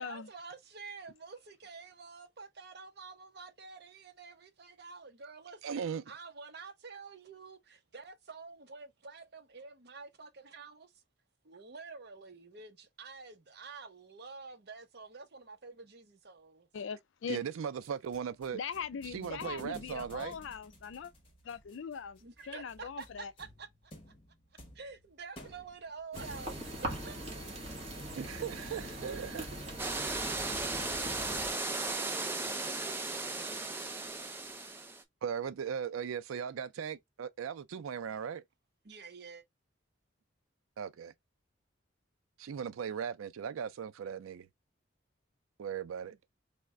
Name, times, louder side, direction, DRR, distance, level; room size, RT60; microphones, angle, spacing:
voice 1, 0.0-10.9 11.4-16.7 22.2-23.7 24.7-27.2 38.8-39.4, right 4 dB, 50° right, 0.6 m, -48 dB
voice 2, 5.6-6.0 17.3-18.6 19.1-20.3 28.1-29.6 35.2-38.4 40.8-41.1 42.4-44.5 45.6-46.2, right 7 dB, 90° right, 0.4 m, -38 dB
voice 3, 16.7-17.4 18.5-21.1 21.4-23.3, left 6 dB, 70° left, 0.4 m, -41 dB
sound 1, 17.8-26.7, left 1 dB, 25° left, 0.9 m, -55 dB
sound 2, 26.1-31.5, right 1 dB, 30° right, 1.1 m, -41 dB
sound 3, 29.8-35.0, right 3 dB, 10° right, 0.3 m, -36 dB
3.2 x 2.1 x 3.5 m
head